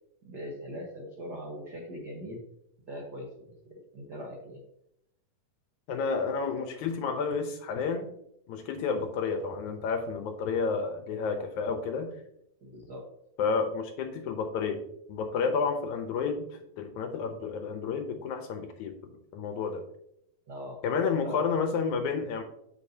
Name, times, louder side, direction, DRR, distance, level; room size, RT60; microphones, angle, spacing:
voice 1, 0.2-2.4 2.9-4.6 12.6-13.0 20.5-20.8 21.2-21.5, equal, 75° right, -1 dB, 0.9 m, -41 dB
voice 2, 5.9-8.1 8.5-12.1 13.4-14.8 15.1-16.5 16.8-18.9 19.3-19.8 20.8-22.4, left 5 dB, 75° left, 6 dB, 1.9 m, -30 dB
8.1 x 7.2 x 2.8 m, 0.76 s
omnidirectional pair, 3.9 m